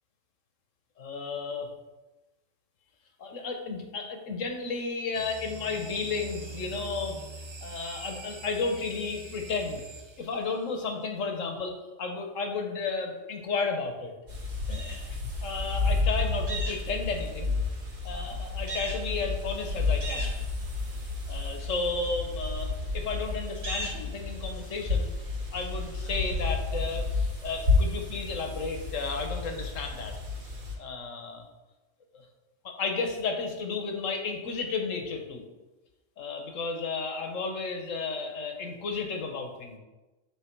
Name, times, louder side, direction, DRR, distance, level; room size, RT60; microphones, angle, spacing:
voice 1, 1.0-1.7 3.2-7.2 7.6-9.8 10.2-14.1 14.7-17.5 18.0-20.4 21.3-25.1 25.5-30.1 30.8-31.4 32.1-32.2 32.6-35.4 36.2-39.8, left 4 dB, 85° left, 4 dB, 1.4 m, -33 dB
sound 1, 5.1-10.6, right 3 dB, 40° right, 0.4 m, -44 dB
sound 2, 14.3-30.7, left 3 dB, 70° right, 2.7 m, -31 dB
9.4 x 3.4 x 4.5 m, 1.1 s
omnidirectional pair, 1.3 m